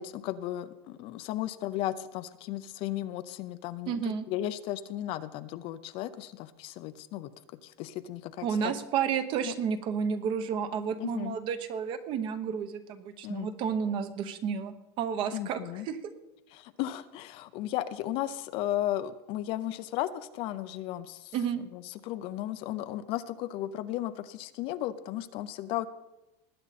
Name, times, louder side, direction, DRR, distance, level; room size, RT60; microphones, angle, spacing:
voice 1, 0.0-7.3 7.6-8.7 9.4-9.5 11.0-11.4 13.2-13.5 15.3-15.9 16.5-25.9, left 13 dB, 40° left, 13 dB, 0.6 m, -35 dB
voice 2, 3.9-4.3 8.4-15.6 15.9-16.0 21.3-21.6, right 7 dB, 40° right, 11 dB, 1.0 m, -31 dB
19.5 x 8.8 x 4.2 m, 0.98 s
supercardioid pair, 165°, 14 cm